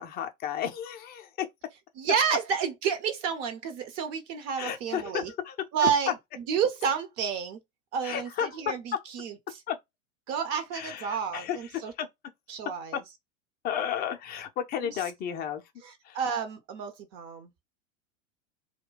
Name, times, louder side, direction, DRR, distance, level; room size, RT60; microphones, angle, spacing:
voice 1, 0.0-1.5 4.6-5.5 5.8-5.9 8.0-8.7 9.7-9.8 10.7-12.1 12.9-13.0 13.6-15.6 16.0-16.2, left 9 dB, 25° left, 0.5 m, -33 dB
voice 2, 2.0-5.3 5.7-7.6 7.9-9.4 10.3-11.9 12.5-13.0 14.8-15.0 15.8-17.5, right 7 dB, 40° right, 0.8 m, -30 dB
2.3 x 2.2 x 3.7 m
figure-of-eight pair, 90°, 40 cm